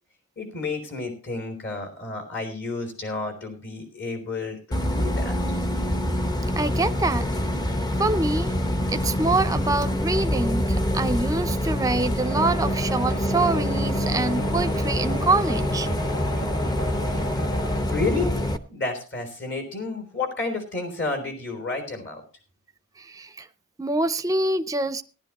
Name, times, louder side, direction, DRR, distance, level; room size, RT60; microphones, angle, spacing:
voice 1, 0.4-5.4 17.9-18.4 18.7-22.2, left 3 dB, 50° left, 4 dB, 3.5 m, -31 dB
Bus, 4.7-18.6, equal, 20° left, 0.8 m, -25 dB
voice 2, 6.6-7.3 8.0-8.5 8.9-15.9 23.0-23.5 23.8-25.0, right 2 dB, 15° right, 11 dB, 0.6 m, -25 dB
sound 1, 12.2-17.8, right 1 dB, 75° left, 2.5 m, -36 dB
17.5 x 11.0 x 3.0 m, 0.36 s
head